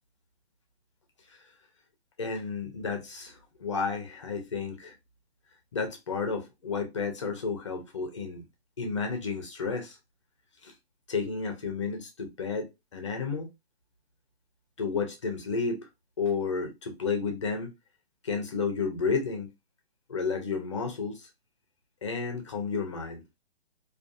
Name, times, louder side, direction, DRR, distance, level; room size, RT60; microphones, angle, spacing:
voice 1, 2.2-4.9 5.7-8.5 8.8-10.0 10.6-10.7 11.1-13.5 14.8-15.9 16.2-17.7 18.2-19.5 20.1-21.3 22.0-23.2, left 5 dB, 30° left, 0.4 m, -32 dB
2.3 x 2.3 x 2.5 m
hypercardioid pair, 160°, 32 cm